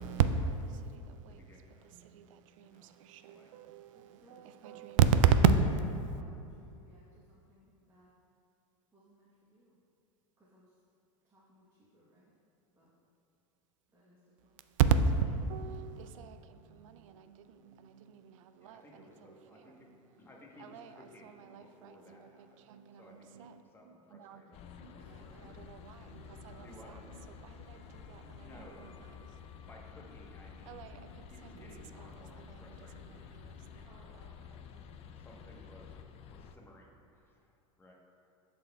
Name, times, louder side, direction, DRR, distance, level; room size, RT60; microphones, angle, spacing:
voice 1, 0.0-5.5 14.4-20.3 20.6-24.4 24.8-29.5 30.5-33.9, right 7 dB, 75° right, 0.4 m, -34 dB
voice 2, 1.3-1.9 2.6-2.9 3.3-3.5 18.6-19.9 20.2-22.6 22.9-25.6 26.6-26.9 28.4-28.7 29.7-31.0 31.3-33.6 34.4-34.6 35.1-35.9 36.2-37.9, left 1 dB, 15° left, 1.0 m, -58 dB
voice 3, 3.9-4.9 6.0-8.1 8.9-9.8 10.4-10.8 11.2-12.3 12.7-12.9 13.9-14.6 24.9-25.7 26.5-27.3 28.5-29.4 31.9-32.2 33.8-35.1 35.4-35.5, right 1 dB, 15° right, 1.0 m, -62 dB
sound 1, 24.5-36.5, left 7 dB, 40° left, 0.4 m, -51 dB
11.5 x 4.1 x 2.2 m
supercardioid pair, 110°, 17 cm